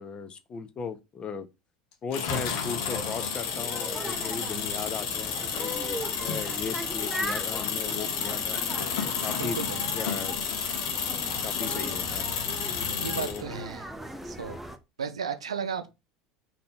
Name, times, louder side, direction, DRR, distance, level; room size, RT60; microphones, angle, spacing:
voice 1, 0.0-1.5 2.0-5.7 6.2-8.6 9.0-9.6 9.9-10.3 11.2-12.3 13.1-13.4, left 6 dB, 35° left, 0.6 m, -37 dB
sound 1, 2.1-13.4, left 6 dB, 60° left, 1.0 m, -31 dB
sound 2, 2.8-14.8, right 1 dB, 5° right, 0.6 m, -39 dB
voice 2, 9.4-9.9 13.0-13.8 14.2-14.6 15.0-15.9, right 6 dB, 80° right, 0.5 m, -34 dB
3.9 x 2.8 x 3.7 m
figure-of-eight pair, 70°, 3 cm